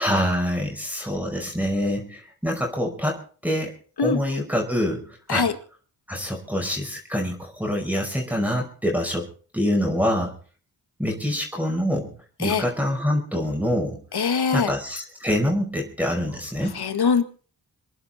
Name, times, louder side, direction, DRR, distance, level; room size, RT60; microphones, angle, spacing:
voice 1, 0.0-3.7 4.0-5.4 6.1-9.3 9.5-10.4 11.0-12.1 12.4-14.0 14.5-16.8, equal, 5° right, 0 dB, 5.3 m, -25 dB
voice 2, 14.1-14.7 16.7-17.2, left 5 dB, 75° left, 9 dB, 2.0 m, -22 dB
26.5 x 11.0 x 4.3 m, 0.41 s
cardioid pair, 65°, 39 cm